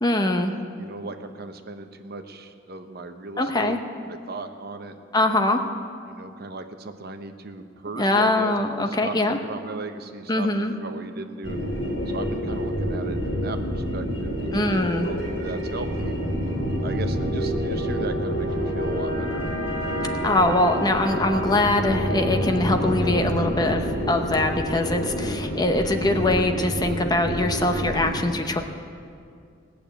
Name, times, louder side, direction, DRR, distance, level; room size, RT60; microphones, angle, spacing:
voice 1, 0.0-0.5 3.4-3.8 5.1-5.6 8.0-9.4 10.3-10.7 14.5-15.1 20.2-28.6, left 2 dB, 20° left, 5 dB, 0.8 m, -22 dB
voice 2, 0.8-3.8 4.1-5.4 6.1-9.1 9.4-11.7 12.1-16.2 16.8-19.4, right 3 dB, 55° right, 7 dB, 0.8 m, -37 dB
sound 1, 11.4-28.1, equal, 75° left, 4.5 m, -27 dB
18.0 x 6.8 x 9.0 m, 2.3 s
head